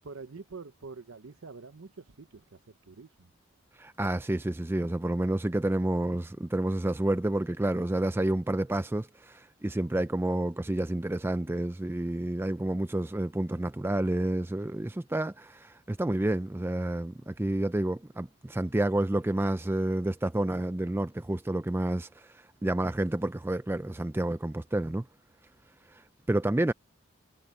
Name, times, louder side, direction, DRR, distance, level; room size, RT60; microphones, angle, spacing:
voice 1, 0.0-3.3, right 4 dB, 80° right, 0.8 m, -46 dB
voice 2, 3.8-25.1 25.9-26.7, right 1 dB, 10° right, 0.4 m, -29 dB
head